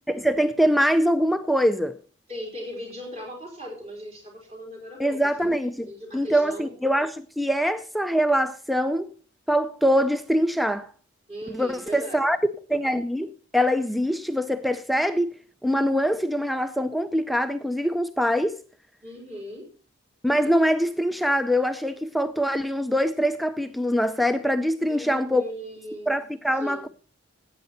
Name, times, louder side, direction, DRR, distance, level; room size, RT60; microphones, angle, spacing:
voice 1, 0.1-2.0 5.0-5.9 6.1-9.1 9.5-10.9 11.5-12.4 12.7-18.6 20.2-25.4 26.1-26.9, equal, ahead, 0.4 m, -23 dB
voice 2, 2.3-5.2 5.8-6.7 11.3-12.2 19.0-19.7 24.8-26.2 26.6-26.9, equal, 30° right, 4.3 m, -38 dB
13.5 x 8.8 x 4.3 m
head